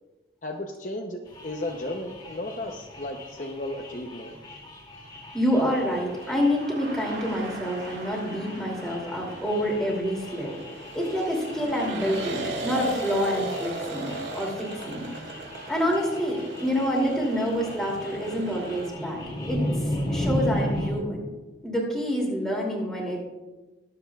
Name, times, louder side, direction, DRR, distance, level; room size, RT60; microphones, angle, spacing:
voice 1, 0.4-4.4, left 1 dB, 45° left, 2 dB, 0.7 m, -34 dB
sound 1, 1.3-20.9, left 1 dB, 25° left, 2.4 m, -36 dB
voice 2, 5.3-10.5 10.9-15.0 15.7-21.2 21.6-23.2, equal, ahead, -2 dB, 2.7 m, -27 dB
sound 2, 5.4-18.9, right 2 dB, 70° right, 1.8 m, -38 dB
22.0 x 7.8 x 2.4 m, 1.2 s
head